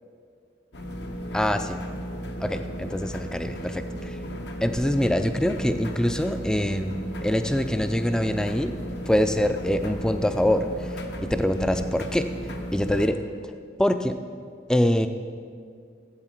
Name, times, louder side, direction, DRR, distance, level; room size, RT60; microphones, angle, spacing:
sound 1, 0.7-13.1, equal, 75° left, 0.9 m, -35 dB
voice 1, 1.3-1.8 2.4-4.2 4.6-8.7 9.1-12.3 12.7-13.2 13.4-13.5 13.8-14.2 14.7-15.1, left 1 dB, 5° left, 8 dB, 0.3 m, -24 dB
12.5 x 8.0 x 4.4 m, 2.2 s
head